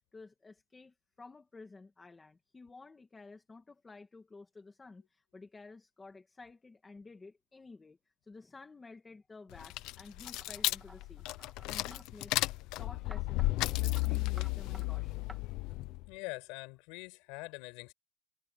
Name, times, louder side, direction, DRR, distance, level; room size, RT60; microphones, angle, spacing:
voice 1, 0.1-8.0 8.2-11.3 11.6-12.5 12.8-15.3, left 3 dB, 10° left, 1.8 m, -53 dB
sound 1, 9.5-16.1, left 20 dB, 55° left, 0.8 m, -34 dB
sound 2, 10.2-12.1 13.1-13.5 14.0-14.1 14.4-14.9 15.3-15.4, right 1 dB, 5° right, 2.1 m, -54 dB
voice 2, 16.1-17.9, left 27 dB, 75° left, 5.2 m, -44 dB
cardioid pair, 180°, 0 cm